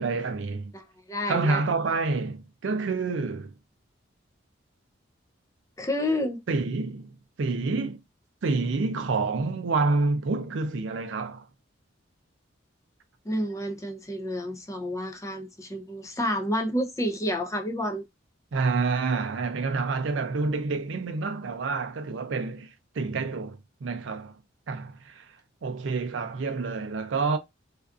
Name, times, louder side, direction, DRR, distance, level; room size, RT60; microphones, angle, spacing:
voice 1, 0.0-0.7 1.3-3.5 6.5-8.0 8.4-11.5 18.5-24.3 24.7-25.3 25.6-27.4, right 3 dB, 70° right, 0.4 m, -28 dB
voice 2, 0.7-1.6 5.8-6.4 13.3-18.0, left 1 dB, 15° left, 0.4 m, -30 dB
2.5 x 2.3 x 2.4 m
head